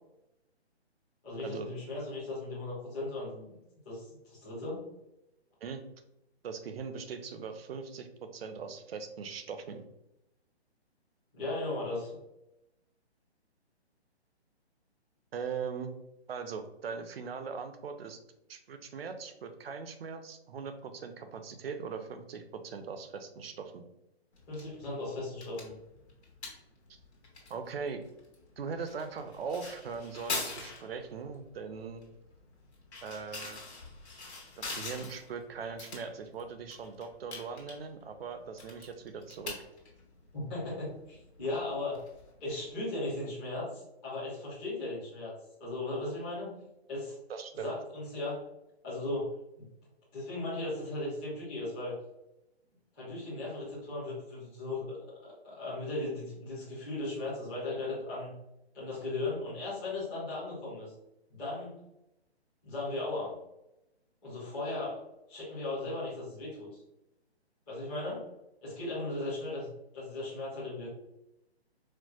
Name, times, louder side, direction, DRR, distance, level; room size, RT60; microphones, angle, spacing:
voice 1, 1.2-3.6 3.8-4.8 11.3-12.1 24.5-25.8 40.3-42.0 42.4-45.3 45.6-46.6 46.9-47.2 47.5-48.4 48.8-49.7 50.1-52.0 53.0-55.0 55.4-58.3 58.7-60.9 61.3-61.8 62.6-63.4 64.2-65.0 65.3-66.8 67.7-68.3 68.6-70.9, left 2 dB, 5° left, -12 dB, 0.5 m, -37 dB
voice 2, 6.4-9.9 15.3-15.9 16.3-18.2 18.5-23.8 27.5-28.0 28.6-32.0 33.0-33.6 34.6-39.6 47.3-47.7, right 5 dB, 60° right, 7 dB, 0.6 m, -40 dB
taking and parking a shopping cart, 24.3-42.7, left 3 dB, 80° left, 1.3 m, -45 dB
4.5 x 2.1 x 2.3 m, 0.87 s
hypercardioid pair, 155°, 33 cm